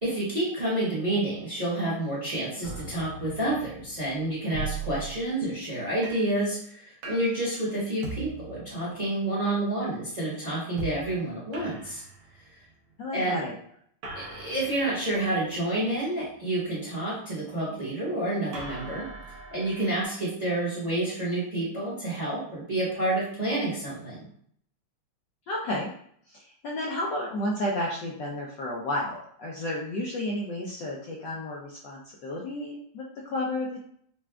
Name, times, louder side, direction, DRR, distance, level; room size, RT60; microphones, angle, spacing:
voice 1, 0.0-12.0 13.1-13.4 14.1-19.0 19.5-24.2, right 1 dB, 25° right, -7 dB, 0.9 m, -29 dB
sound 1, 2.6-5.7 6.0-6.4 7.0-7.5 8.0-9.2 10.8-11.1 11.5-12.7 14.0-16.4 18.5-20.0, right 4 dB, 85° right, 1.8 m, -40 dB
voice 2, 13.0-13.5 25.5-25.9 26.3-33.8, left 1 dB, 75° left, -3 dB, 1.1 m, -32 dB
5.9 x 2.3 x 2.2 m, 0.63 s
omnidirectional pair, 2.4 m